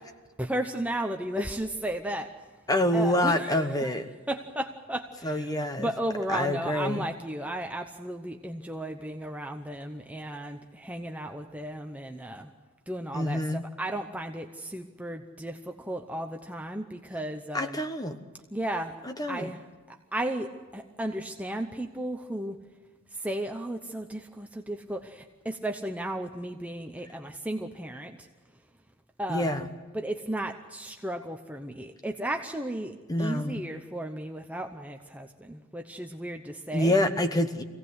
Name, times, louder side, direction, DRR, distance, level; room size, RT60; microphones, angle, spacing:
voice 1, 0.4-2.4 2.9-3.9 4.3-12.5 12.9-17.8 18.5-19.0 19.3-19.6 19.9-22.6 23.1-28.3 29.2-29.6 29.9-37.0, right 1 dB, 5° right, 4 dB, 0.8 m, -34 dB
voice 2, 2.7-4.1 5.2-5.9 6.3-7.1 13.1-13.6 17.5-18.2 19.0-19.5 29.3-29.7 33.1-33.7 36.7-37.6, left 1 dB, 15° left, 8 dB, 1.1 m, -27 dB
25.5 x 17.5 x 8.0 m, 1.3 s
head